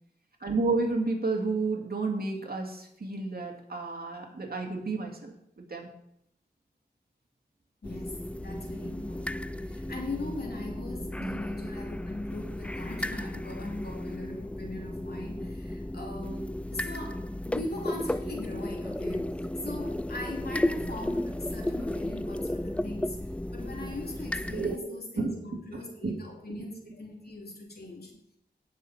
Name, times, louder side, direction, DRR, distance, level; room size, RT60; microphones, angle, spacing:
voice 1, 0.4-5.9 11.2-11.4 24.5-25.3 26.0-26.2 26.5-26.6, right 3 dB, 65° right, 2 dB, 2.2 m, -31 dB
voice 2, 7.8-23.2 23.5-28.1, left 2 dB, 70° left, 0 dB, 2.9 m, -40 dB
sound 1, 7.8-24.8, left 1 dB, 5° left, 0.3 m, -34 dB
18.0 x 6.1 x 4.3 m, 0.75 s
wide cardioid pair, 60°, 17 cm